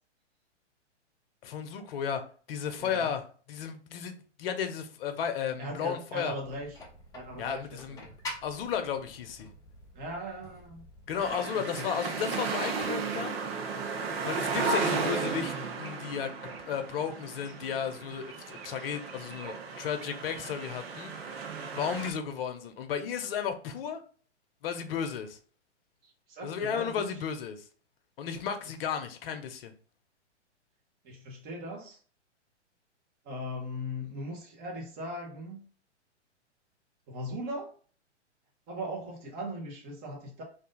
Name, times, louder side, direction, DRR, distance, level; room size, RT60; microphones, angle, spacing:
voice 1, 1.4-2.2 2.5-3.2 3.5-6.3 7.4-8.0 8.4-9.5 11.1-13.4 14.2-24.0 24.6-25.4 26.4-27.7 28.2-29.7, left 7 dB, 50° left, 0.8 m, -34 dB
voice 2, 2.8-3.2 5.6-6.8 7.1-8.1 9.9-10.9 11.5-11.9 26.0-27.3 31.0-32.0 33.2-35.6 37.1-37.7 38.7-40.4, equal, 25° right, 1.4 m, -39 dB
sound 1, 6.4-11.4, left 2 dB, 10° left, 0.6 m, -47 dB
sound 2, 11.2-22.1, right 4 dB, 55° right, 0.8 m, -34 dB
3.4 x 2.7 x 3.9 m
hypercardioid pair, 130°, 36 cm